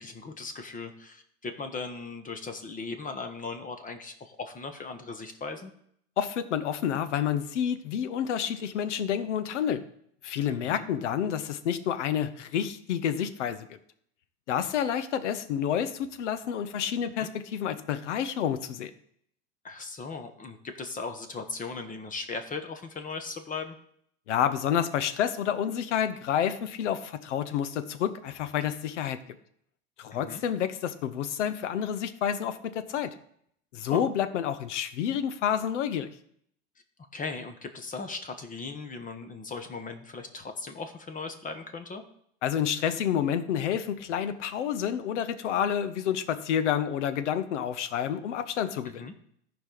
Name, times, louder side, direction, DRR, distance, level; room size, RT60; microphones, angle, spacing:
voice 1, 0.0-5.7 10.5-10.9 17.2-17.3 19.6-23.8 30.1-30.4 33.9-34.0 37.1-42.0 48.8-49.1, left 4 dB, 25° left, 7 dB, 1.1 m, -38 dB
voice 2, 6.2-9.8 10.2-13.7 14.5-18.9 24.3-29.2 30.0-33.1 33.7-36.1 42.4-49.1, left 9 dB, 90° left, 12 dB, 0.9 m, -29 dB
14.0 x 5.0 x 3.9 m, 0.69 s
supercardioid pair, 110°, 35 cm